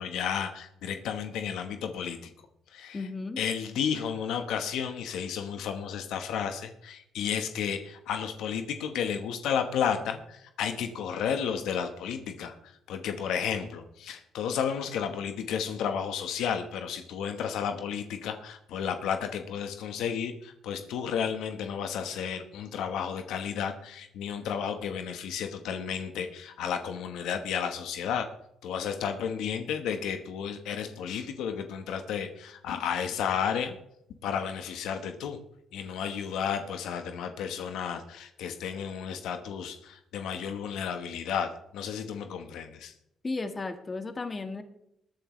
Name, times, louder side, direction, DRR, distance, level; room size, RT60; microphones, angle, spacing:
voice 1, 0.0-2.3 2.7-3.1 3.4-28.3 28.6-33.8 34.2-35.4 35.7-42.9, left 7 dB, 85° left, 7 dB, 1.2 m, -32 dB
voice 2, 2.9-3.4 43.2-44.6, left 3 dB, 30° left, 7 dB, 1.6 m, -34 dB
21.0 x 9.2 x 3.2 m, 0.78 s
cardioid pair, 90°, 0 cm